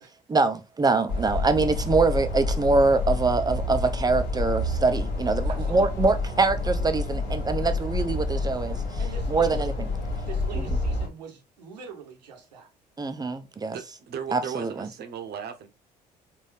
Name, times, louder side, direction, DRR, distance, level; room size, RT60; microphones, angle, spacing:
voice 1, 0.3-8.8 9.3-9.7 10.6-10.7 13.0-13.8 14.3-14.9, right 3 dB, 20° right, 0.6 m, -24 dB
sound 1, 1.1-11.1, left 2 dB, 70° left, 1.3 m, -28 dB
voice 2, 5.5-5.9 9.0-9.6 10.2-12.7, right 6 dB, 85° right, 0.9 m, -43 dB
voice 3, 13.7-15.7, right 8 dB, 50° right, 0.9 m, -36 dB
3.9 x 2.7 x 3.3 m
hypercardioid pair, 55°, 21 cm